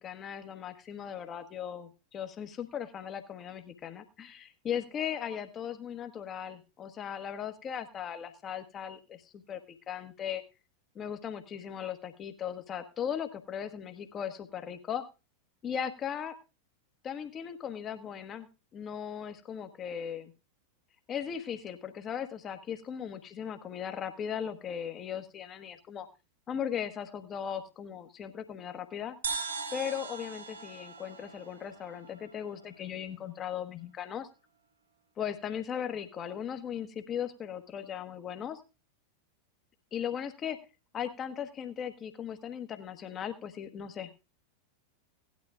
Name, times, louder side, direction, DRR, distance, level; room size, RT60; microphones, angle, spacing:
voice 1, 0.0-10.4 10.9-15.0 15.6-16.3 17.0-18.5 18.7-20.3 21.1-26.1 26.5-29.2 29.7-34.3 35.2-38.6 39.9-40.6 40.9-44.2, left 8 dB, 25° left, 8 dB, 1.3 m, -38 dB
sound 1, 29.2-32.8, right 5 dB, 70° right, 1.4 m, -40 dB
17.5 x 11.5 x 2.4 m, 0.30 s
figure-of-eight pair, 90°, 0 cm